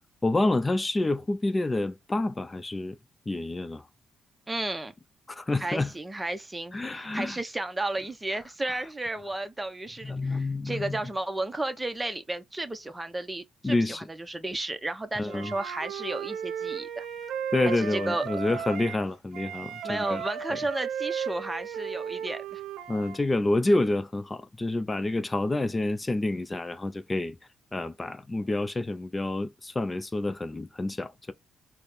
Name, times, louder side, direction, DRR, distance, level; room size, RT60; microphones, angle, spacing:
voice 1, 0.2-3.0 3.3-3.8 5.3-5.9 6.7-7.4 10.0-11.0 13.6-14.0 15.2-15.5 17.5-20.2 22.9-27.4 27.7-31.3, left 2 dB, 20° left, 0.5 m, -28 dB
voice 2, 4.5-4.9 5.6-17.1 17.8-18.2 19.8-22.6, right 2 dB, 15° right, 0.7 m, -33 dB
Wind instrument woodwind instrument, 15.3-19.0 19.3-23.2, right 8 dB, 80° right, 0.7 m, -35 dB
4.2 x 2.1 x 3.4 m
cardioid pair, 90°, 0 cm